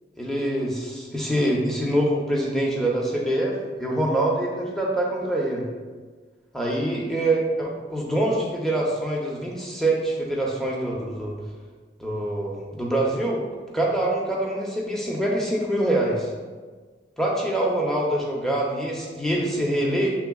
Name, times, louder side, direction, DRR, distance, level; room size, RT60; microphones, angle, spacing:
voice 1, 0.2-5.6 6.5-11.4 12.0-13.4 13.7-16.3 17.2-20.1, right 1 dB, 5° left, -3 dB, 0.6 m, -25 dB
7.0 x 3.2 x 2.3 m, 1.4 s
head